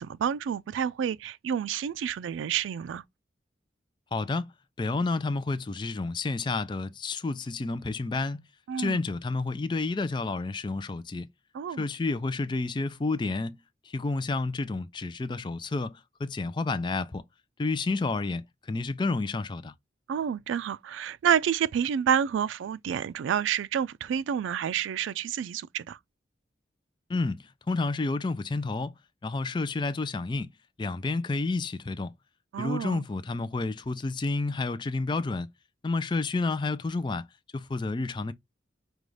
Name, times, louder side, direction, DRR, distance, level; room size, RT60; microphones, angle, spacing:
voice 1, 0.0-3.0 8.7-9.0 11.5-11.9 20.1-26.0 32.5-33.0, right 8 dB, 90° right, 0.3 m, -29 dB
voice 2, 4.1-4.5 4.8-8.4 8.8-11.3 11.8-13.6 13.8-17.2 17.6-19.7 27.1-28.9 29.2-30.5 30.8-32.1 32.6-35.5 35.8-37.2 37.5-38.3, left 3 dB, 25° left, 0.3 m, -30 dB
5.3 x 2.3 x 3.1 m
head